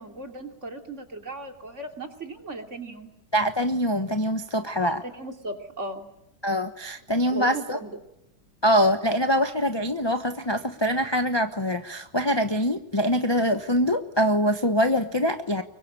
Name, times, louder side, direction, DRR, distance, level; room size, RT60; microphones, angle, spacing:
voice 1, 0.0-3.1 4.8-6.1 7.3-8.0, right 2 dB, 40° right, 4 dB, 3.2 m, -37 dB
voice 2, 3.3-5.0 6.4-7.8 8.6-15.6, equal, 20° left, 7 dB, 0.9 m, -24 dB
25.0 x 23.0 x 8.9 m, 0.81 s
omnidirectional pair, 1.9 m